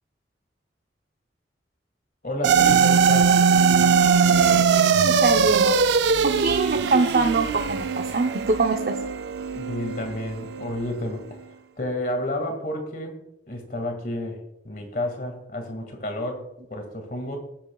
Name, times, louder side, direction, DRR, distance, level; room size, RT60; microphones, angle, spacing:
voice 1, 2.2-3.4 9.5-11.4 11.8-13.2 13.5-17.4, left 1 dB, 50° left, 4 dB, 2.0 m, -31 dB
sound 1, 2.4-10.9, right 6 dB, 80° right, 0.4 m, -20 dB
voice 2, 5.0-5.8 6.2-9.0, right 3 dB, 55° right, 4 dB, 0.7 m, -23 dB
19.0 x 8.6 x 2.3 m, 0.85 s
head